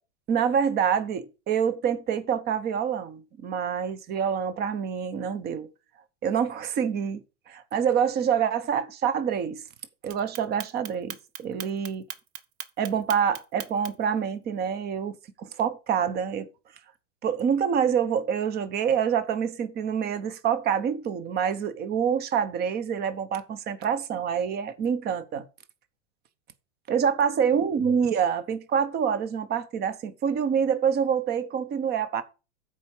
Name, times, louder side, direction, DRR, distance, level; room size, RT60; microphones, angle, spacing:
voice 1, 0.3-5.7 6.2-9.6 10.0-12.0 12.8-16.5 17.2-25.5 26.9-32.2, right 7 dB, 25° right, 0.9 m, -26 dB
Clock, 10.1-14.1, right 10 dB, 60° right, 1.0 m, -38 dB
7.5 x 4.8 x 7.1 m
hypercardioid pair, 130°, 36 cm